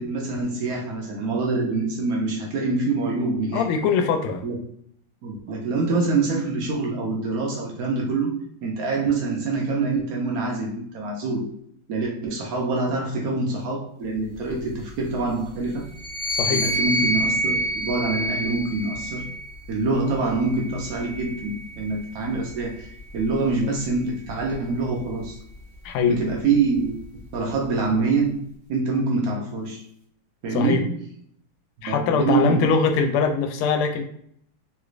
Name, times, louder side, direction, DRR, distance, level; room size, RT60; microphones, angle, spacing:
voice 1, 0.0-3.7 4.4-4.6 5.2-11.5 11.9-15.9 16.5-19.3 19.7-25.4 26.1-29.8 30.4-31.1 31.8-32.8, right 3 dB, 90° right, -1 dB, 0.7 m, -25 dB
voice 2, 3.5-4.4 16.3-16.6 25.8-26.2 30.5-30.8 31.8-34.0, left 5 dB, 90° left, 5 dB, 1.5 m, -22 dB
sound 1, 16.0-19.6 20.4-22.0, right 1 dB, 50° right, 0.6 m, -27 dB
3.4 x 3.1 x 2.4 m, 0.67 s
omnidirectional pair, 2.3 m